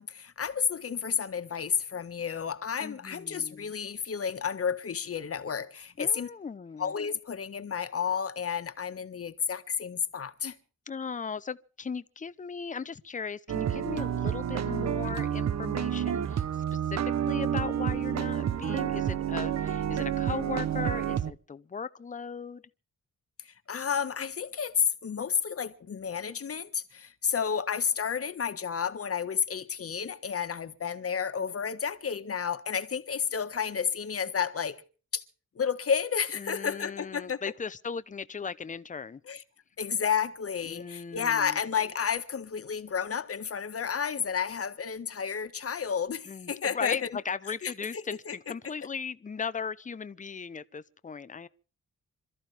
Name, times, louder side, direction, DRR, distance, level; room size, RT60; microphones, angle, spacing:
voice 1, 0.0-6.3 6.8-10.5 23.4-34.8 35.1-35.2 35.5-37.4 39.3-39.4 39.8-47.2 47.6-48.3, left 7 dB, 50° left, 1.4 m, -31 dB
voice 2, 2.8-3.7 6.0-6.9 10.9-22.6 36.3-39.2 40.7-41.6 46.2-51.5, left 5 dB, 25° left, 0.7 m, -38 dB
sound 1, 13.5-21.3, right 9 dB, 60° right, 0.8 m, -29 dB
27.0 x 13.5 x 3.4 m
wide cardioid pair, 140°, 29 cm